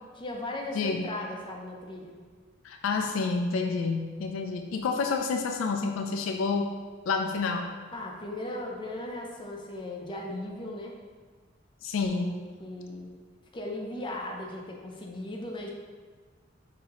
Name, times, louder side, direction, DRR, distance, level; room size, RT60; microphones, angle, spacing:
voice 1, 0.1-2.2 7.9-11.0 12.1-13.1 13.5-15.7, left 1 dB, 25° left, 0 dB, 0.6 m, -37 dB
voice 2, 0.7-1.1 2.6-6.7 7.1-7.7 11.8-12.4, left 4 dB, 85° left, 4 dB, 0.3 m, -29 dB
5.6 x 2.8 x 2.9 m, 1.5 s
head